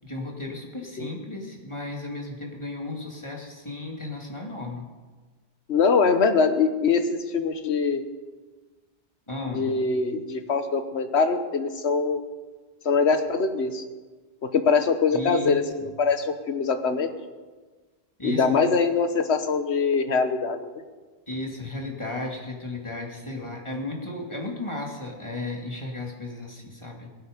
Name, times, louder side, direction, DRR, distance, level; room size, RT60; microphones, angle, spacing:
voice 1, 0.0-4.9 9.3-9.7 15.1-15.9 18.2-18.4 21.3-27.1, left 2 dB, 25° left, 0 dB, 2.4 m, -34 dB
voice 2, 5.7-8.0 9.5-12.2 12.8-13.8 14.4-17.1 18.2-20.7, left 5 dB, 80° left, 9 dB, 1.4 m, -23 dB
18.5 x 12.5 x 5.1 m, 1.3 s
omnidirectional pair, 1.1 m